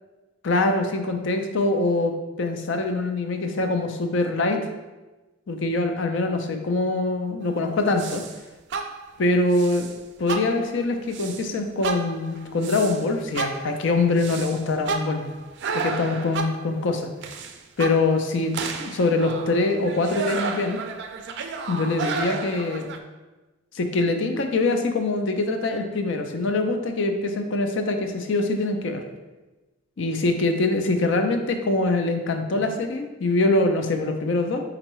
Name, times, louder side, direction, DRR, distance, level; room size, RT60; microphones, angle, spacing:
voice 1, 0.4-4.7 5.5-8.2 9.2-9.9 10.2-15.3 15.7-17.1 17.8-20.8 21.7-22.9 23.7-29.0 30.0-34.6, left 2 dB, 60° left, 6 dB, 0.5 m, -24 dB
sound 1, 8.0-8.4 8.7-9.2 9.5-9.9 10.3-10.8 11.1-11.5 11.8-13.0 13.3-16.7 17.2-18.2 18.5-23.0, right 5 dB, 55° right, 0.4 m, -32 dB
4.4 x 3.9 x 3.0 m, 1.1 s
head